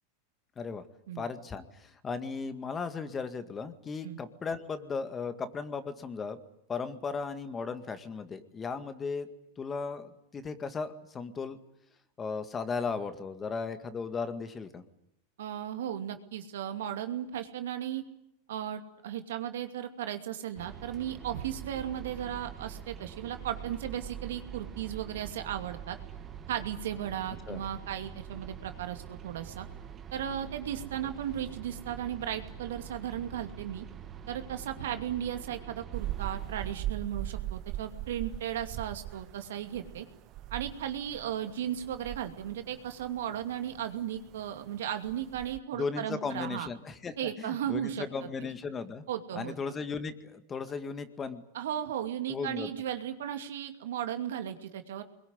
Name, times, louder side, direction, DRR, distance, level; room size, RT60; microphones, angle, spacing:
voice 1, 1.2-6.4 6.7-9.3 9.6-11.6 12.2-14.8 27.5-27.6 45.7-49.0 49.3-51.4 52.3-52.7, left 5 dB, 20° left, 10 dB, 2.0 m, -36 dB
voice 2, 15.4-18.0 18.5-26.0 26.5-29.7 30.1-33.9 34.3-40.1 40.5-46.7 47.2-48.5 49.1-49.5 51.5-55.0, right 10 dB, 80° right, 7 dB, 2.6 m, -36 dB
sound 1, 20.6-36.8, right 9 dB, 25° right, 2.1 m, -45 dB
sound 2, 35.9-45.6, right 14 dB, 45° right, 1.1 m, -40 dB
25.0 x 22.0 x 9.7 m, 0.79 s
supercardioid pair, 120°, 0 cm